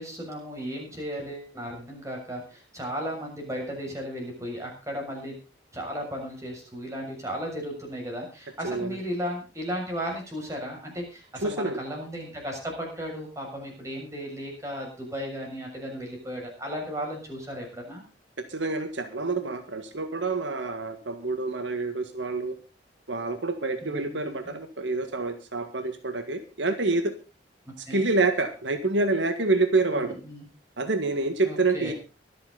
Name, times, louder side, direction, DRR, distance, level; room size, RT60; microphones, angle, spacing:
voice 1, 0.0-5.4 5.7-18.0 23.8-24.5 27.9-28.1 29.9-30.5 31.4-31.9, equal, 15° right, 0 dB, 6.9 m, -35 dB
voice 2, 8.6-9.0 11.4-11.8 18.5-22.5 23.1-27.1 27.8-30.2 30.8-31.9, right 3 dB, 80° right, 8 dB, 1.7 m, -27 dB
24.0 x 8.7 x 4.0 m, 0.32 s
head